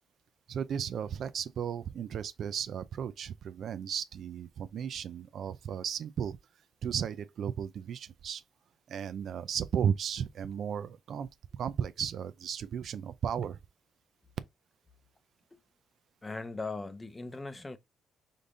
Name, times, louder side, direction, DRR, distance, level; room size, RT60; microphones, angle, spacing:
voice 1, 0.5-6.4 6.8-8.4 8.9-11.3 11.6-13.6, right 8 dB, 65° right, 0.4 m, -34 dB
voice 2, 16.2-17.8, left 3 dB, 20° left, 0.7 m, -39 dB
5.1 x 2.7 x 3.7 m
cardioid pair, 90°, 0 cm